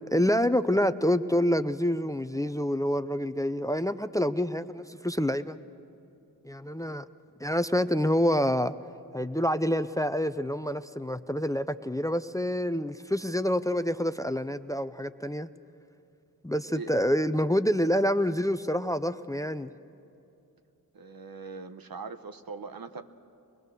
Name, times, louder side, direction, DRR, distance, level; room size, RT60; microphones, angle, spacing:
voice 1, 0.1-5.6 6.4-7.1 7.4-8.7 9.1-15.5 16.4-19.7, equal, 10° left, 12 dB, 0.6 m, -27 dB
voice 2, 20.9-23.0, right 5 dB, 70° right, 9 dB, 1.0 m, -41 dB
24.5 x 20.0 x 6.8 m, 2.7 s
cardioid pair, 45°, 37 cm